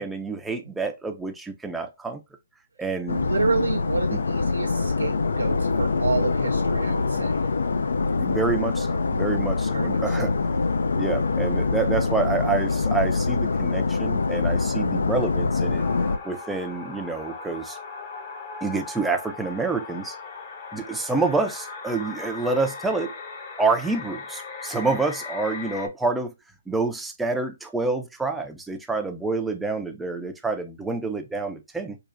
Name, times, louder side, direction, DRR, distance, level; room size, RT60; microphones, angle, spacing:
voice 1, 0.0-2.2 2.8-3.3 4.1-4.2 8.2-10.3 10.9-15.9 16.2-17.8 18.6-20.2 20.7-23.1 23.6-26.3 26.7-32.0, right 3 dB, 5° right, 0.5 m, -27 dB
sound 1, 3.1-16.2, left 4 dB, 75° left, 0.5 m, -24 dB
voice 2, 3.1-7.5 9.7-10.3, right 4 dB, 90° right, 0.4 m, -29 dB
sound 2, 15.8-25.9, left 4 dB, 35° left, 0.8 m, -38 dB
4.7 x 2.4 x 2.5 m
hypercardioid pair, 150°, 0 cm